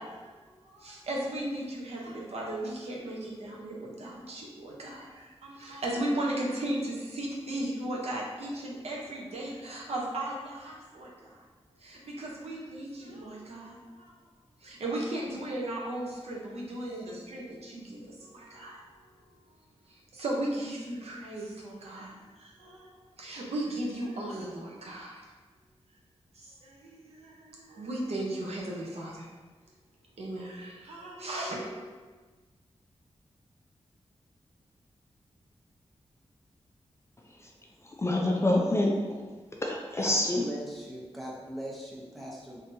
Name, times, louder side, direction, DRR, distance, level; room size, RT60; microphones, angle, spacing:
voice 1, 0.0-11.4 11.8-14.2 14.6-19.0 19.5-19.6 19.9-25.3 26.3-29.3 30.2-31.9, right 1 dB, 70° right, 0.7 m, -36 dB
voice 2, 38.0-39.2 39.6-40.4, left 1 dB, 25° left, 0.3 m, -26 dB
voice 3, 40.0-42.6, equal, ahead, 0.8 m, -40 dB
3.6 x 2.7 x 2.6 m
wide cardioid pair, 105°, 11 cm